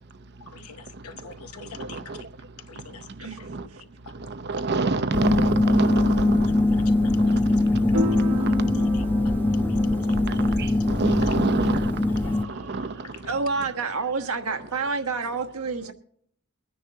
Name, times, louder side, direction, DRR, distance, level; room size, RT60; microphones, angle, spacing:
voice 1, 0.4-2.3 2.7-4.1 6.7-9.4 9.6-11.3 12.1-12.3 13.0-13.3, left 6 dB, 80° left, 0.9 m, -46 dB
voice 2, 1.8-2.2 3.5-3.6 4.2-6.4 10.3-11.9 12.5-12.9 14.5-14.6, right 3 dB, 50° right, 0.8 m, -27 dB
sound 1, 4.6-14.3, equal, 70° right, 1.0 m, -36 dB
sound 2, 5.1-12.5, left 2 dB, 10° left, 0.5 m, -22 dB
voice 3, 12.2-15.9, right 4 dB, 90° right, 1.3 m, -30 dB
23.0 x 9.9 x 2.9 m
head